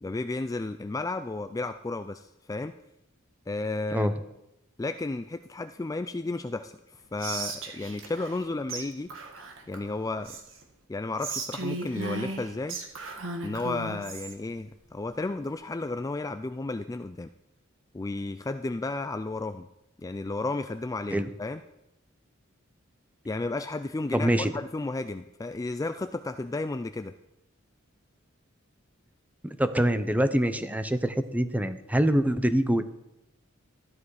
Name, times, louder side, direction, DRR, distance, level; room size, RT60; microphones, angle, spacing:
voice 1, 0.0-2.7 3.5-4.1 4.8-6.7 7.1-9.1 9.7-10.4 10.9-12.8 13.4-17.3 17.9-19.7 20.0-21.6 23.3-27.1, left 2 dB, 15° left, 9 dB, 0.3 m, -33 dB
Whispering, 7.2-8.4 8.7-8.8 9.1-10.6 11.2-14.3, right 3 dB, 70° right, 1.9 m, -36 dB
voice 2, 24.1-24.5 29.4-32.8, right 1 dB, 10° right, 10 dB, 0.7 m, -25 dB
13.5 x 11.0 x 4.8 m, 0.90 s
head